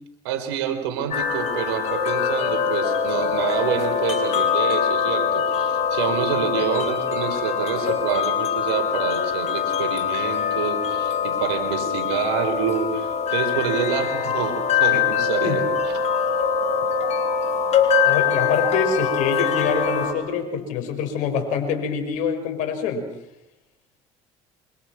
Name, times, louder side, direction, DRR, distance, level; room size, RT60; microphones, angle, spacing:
voice 1, 0.2-15.9, right 8 dB, 85° right, 7 dB, 4.5 m, -27 dB
sound 1, 1.1-20.1, left 6 dB, 55° left, 4.5 m, -23 dB
voice 2, 18.0-23.1, left 6 dB, 70° left, 5 dB, 6.2 m, -25 dB
27.5 x 25.0 x 6.1 m, 0.80 s
hypercardioid pair, 70°, 13 cm